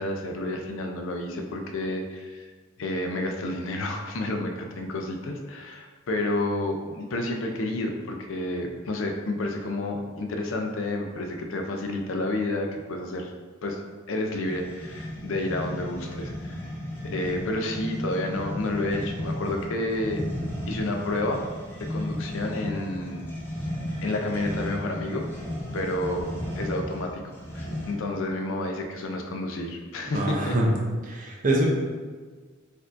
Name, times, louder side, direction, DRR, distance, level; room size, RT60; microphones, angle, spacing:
voice 1, 0.0-2.5 2.8-13.3 13.6-13.8 14.1-16.6 17.0-20.2 20.7-21.4 21.8-23.3 24.0-25.3 25.7-27.2 27.5-30.6, left 2 dB, 70° left, 3 dB, 0.5 m, -30 dB
sound 1, 14.4-28.1, left 1 dB, 10° left, 0.6 m, -34 dB
voice 2, 30.1-30.7 31.0-31.7, right 1 dB, 40° right, -2 dB, 0.6 m, -24 dB
4.3 x 2.6 x 2.4 m, 1.5 s
head